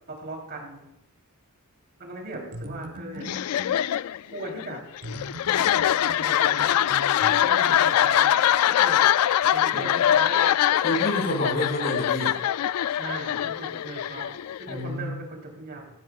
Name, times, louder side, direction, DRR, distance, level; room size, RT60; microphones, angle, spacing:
voice 1, 0.1-0.8 2.0-3.3 4.2-4.9 6.0-6.9 7.2-9.0 9.5-10.5 12.9-15.9, right 2 dB, 45° right, 0 dB, 3.4 m, -38 dB
sound 1, 2.3-3.8 5.0-7.3, right 1 dB, 85° right, 1.2 m, -40 dB
sound 2, 3.2-14.9, left 11 dB, 80° left, 0.3 m, -23 dB
voice 2, 9.7-10.0 10.8-12.4 14.7-15.2, equal, 45° left, 0 dB, 5.0 m, -29 dB
17.0 x 15.0 x 2.4 m, 0.87 s
head